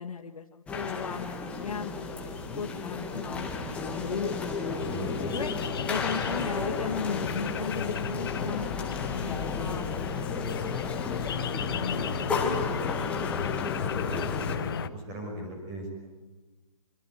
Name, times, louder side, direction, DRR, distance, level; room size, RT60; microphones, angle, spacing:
voice 1, 0.0-10.8 11.1-13.0, left 5 dB, 80° left, 4 dB, 1.8 m, -37 dB
sound 1, 0.7-14.6, left 4 dB, 5° left, 2.1 m, -33 dB
sound 2, 4.7-14.9, left 8 dB, 40° left, 1.2 m, -34 dB
voice 2, 4.8-5.3 11.6-11.8 12.1-12.3 14.1-16.0, right 1 dB, 20° right, 3 dB, 5.9 m, -39 dB
25.0 x 24.5 x 9.4 m, 1.2 s
hypercardioid pair, 160°, 18 cm